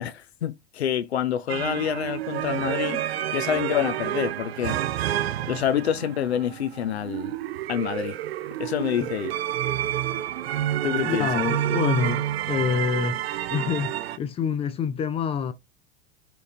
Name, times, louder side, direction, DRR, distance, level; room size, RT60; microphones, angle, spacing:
voice 1, 0.0-4.8 5.5-7.4 7.7-8.2 8.6-9.3 10.8-11.4, left 9 dB, 80° left, 0.6 m, -27 dB
sound 1, 1.5-14.2, right 12 dB, 70° right, 0.5 m, -29 dB
voice 2, 11.0-13.2 13.5-15.5, left 6 dB, 20° left, 0.4 m, -27 dB
4.5 x 3.5 x 2.6 m
figure-of-eight pair, 90°, 31 cm